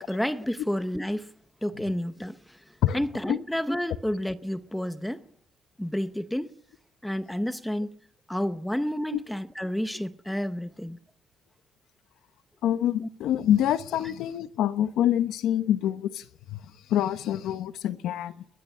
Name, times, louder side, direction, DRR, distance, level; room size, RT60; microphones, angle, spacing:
voice 1, 0.0-1.3 1.6-5.2 5.8-6.5 7.0-7.9 8.3-11.0 13.0-13.1, equal, 5° left, 0.7 m, -30 dB
voice 2, 12.6-16.6 16.9-18.3, left 11 dB, 85° left, 1.1 m, -26 dB
21.5 x 21.5 x 5.7 m
cardioid pair, 175°, 0 cm